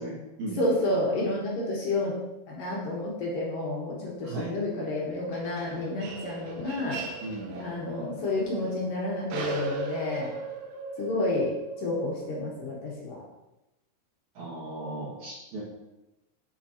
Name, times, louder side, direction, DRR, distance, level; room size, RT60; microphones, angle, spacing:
voice 1, 0.0-0.6 4.2-4.5 7.2-7.6 14.3-15.6, right 2 dB, 55° right, -6 dB, 2.8 m, -36 dB
voice 2, 0.6-2.2 2.5-7.0 7.6-10.3 11.0-11.5 11.8-13.2, left 2 dB, 65° left, -5 dB, 2.6 m, -30 dB
sound 1, 5.3-12.5, right 3 dB, 80° right, 3.1 m, -38 dB
8.1 x 7.3 x 2.9 m, 1.0 s
omnidirectional pair, 4.8 m